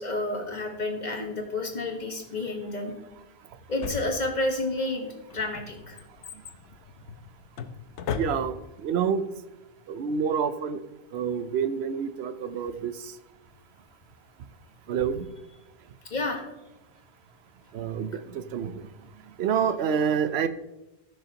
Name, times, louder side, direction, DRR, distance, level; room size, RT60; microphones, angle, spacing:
voice 1, 0.0-2.9 3.7-6.0 16.1-16.4, left 2 dB, 40° left, 3 dB, 1.4 m, -30 dB
Drawer open or close, 3.8-4.7 5.3-8.8 9.1-9.2, left 7 dB, 90° left, 1.0 m, -36 dB
voice 2, 8.1-8.5 8.8-9.2 9.9-10.8 11.1-12.9 14.9-15.3 17.7-18.8 19.4-20.5, right 7 dB, 70° right, 11 dB, 0.9 m, -27 dB
14.5 x 6.4 x 2.9 m, 0.96 s
omnidirectional pair, 1.2 m